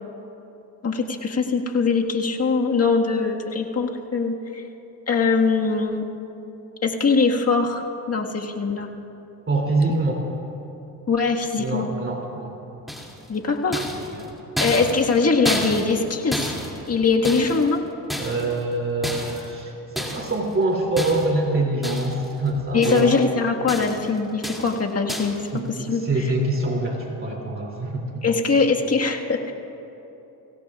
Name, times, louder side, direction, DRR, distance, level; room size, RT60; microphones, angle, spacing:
voice 1, 0.8-4.6 5.1-6.0 6.8-7.8 8.1-8.9 11.1-11.9 13.3-13.9 14.6-16.5 16.9-17.8 22.7-25.4 25.7-26.0 28.2-29.5, left 4 dB, 35° left, 1 dB, 1.7 m, -22 dB
voice 2, 9.5-10.1 11.6-12.6 14.1-14.3 18.2-23.2 25.5-28.2, right 2 dB, 30° right, -1 dB, 2.8 m, -25 dB
sound 1, 12.9-13.3 13.7-16.1 16.3-17.7 18.1-18.6 19.0-19.5 20.0-20.4 21.0-21.4 21.8-22.3 22.6-23.3 23.7-24.1 24.4-24.8 25.1-25.4, equal, ahead, 2.5 m, -31 dB
24.0 x 16.5 x 2.4 m, 2.9 s
supercardioid pair, 70°, 42 cm